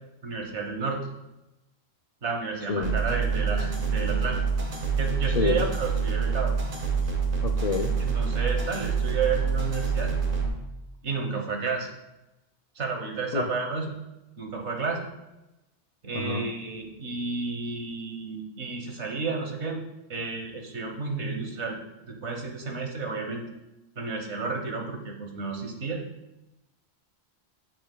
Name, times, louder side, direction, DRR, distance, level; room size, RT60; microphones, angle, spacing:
voice 1, 0.2-1.0 2.2-4.4 5.0-6.5 8.0-10.1 11.0-11.9 12.7-13.9 14.4-15.1 16.0-19.8 20.1-21.8 22.1-23.4 24.0-26.0, right 4 dB, 85° right, 2 dB, 1.5 m, -31 dB
sound 1, 2.8-10.5, right 5 dB, 50° right, 1.4 m, -26 dB
voice 2, 5.3-5.7 7.4-8.0 13.3-13.5 16.1-16.5, left 5 dB, 55° left, 3 dB, 0.5 m, -28 dB
8.4 x 8.1 x 2.2 m, 0.97 s
omnidirectional pair, 1.1 m